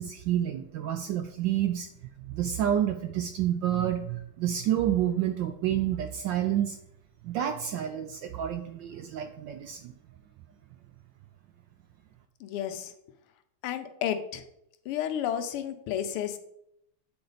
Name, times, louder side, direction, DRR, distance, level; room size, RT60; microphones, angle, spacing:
voice 1, 0.0-1.9 2.2-6.8 7.2-9.9, right 11 dB, 75° right, 7 dB, 1.0 m, -29 dB
voice 2, 12.4-12.9 13.6-14.4 14.9-16.4, left 10 dB, 85° left, 9 dB, 1.6 m, -31 dB
8.6 x 4.3 x 3.9 m, 0.76 s
omnidirectional pair, 2.4 m